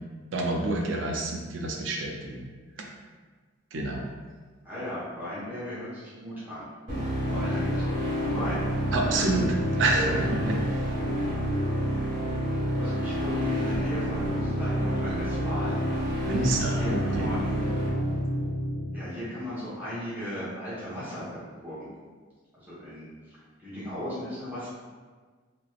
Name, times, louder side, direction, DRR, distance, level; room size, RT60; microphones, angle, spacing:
voice 1, 0.3-2.4 3.7-4.1 8.9-10.4 16.2-17.3, right 2 dB, 70° right, 0 dB, 0.5 m, -28 dB
voice 2, 4.6-6.7 7.3-8.6 9.9-10.3 12.8-15.9 16.5-17.7 18.9-21.9 22.6-23.1 23.6-24.7, left 1 dB, 10° right, -11 dB, 1.0 m, -36 dB
sound 1, 6.9-18.9, equal, 40° right, 1.3 m, -28 dB
3.1 x 2.9 x 2.4 m, 1.4 s
head